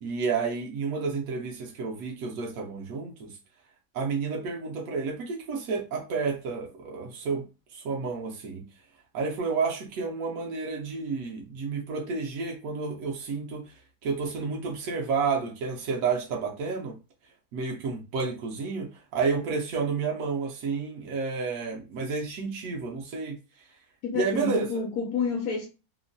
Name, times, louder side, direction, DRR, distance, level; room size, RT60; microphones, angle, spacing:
voice 1, 0.0-3.3 3.9-7.5 7.7-8.6 9.1-13.7 14.0-17.0 17.5-23.4 24.1-24.7, right 5 dB, 70° right, 0.9 m, -30 dB
voice 2, 24.0-25.7, left 5 dB, 75° left, 1.0 m, -29 dB
3.0 x 2.1 x 2.5 m
omnidirectional pair, 1.7 m